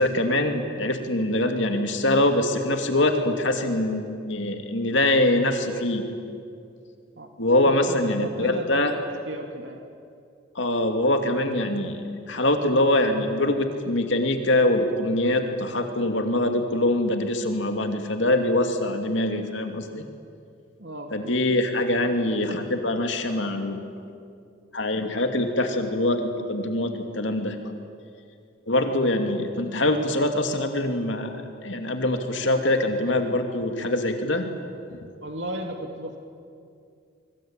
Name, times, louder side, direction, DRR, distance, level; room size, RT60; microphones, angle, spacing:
voice 1, 0.0-6.1 7.4-8.9 10.5-12.0 12.3-20.0 21.1-23.9 24.7-27.6 28.7-34.5 34.9-35.0, left 1 dB, 65° left, 5 dB, 2.6 m, -24 dB
voice 2, 7.6-8.9 9.2-9.8 20.8-21.4 35.2-36.2, right 1 dB, 65° right, 3 dB, 2.3 m, -35 dB
24.5 x 24.0 x 9.0 m, 2.4 s
head